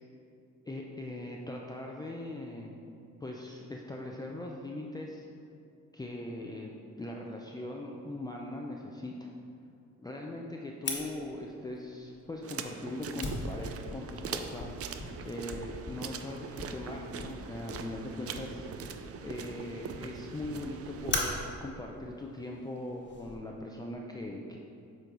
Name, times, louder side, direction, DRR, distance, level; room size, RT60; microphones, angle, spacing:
voice 1, 0.7-2.8 3.2-5.3 5.9-6.7 7.0-9.3 10.0-18.9 19.2-24.6, left 1 dB, 15° left, -1 dB, 0.5 m, -40 dB
Fire, 10.8-23.3, left 2 dB, 35° left, 1.3 m, -41 dB
sound 1, 12.4-21.2, right 7 dB, 50° right, 0.5 m, -42 dB
8.0 x 4.4 x 3.9 m, 2.5 s
cardioid pair, 90°, 30 cm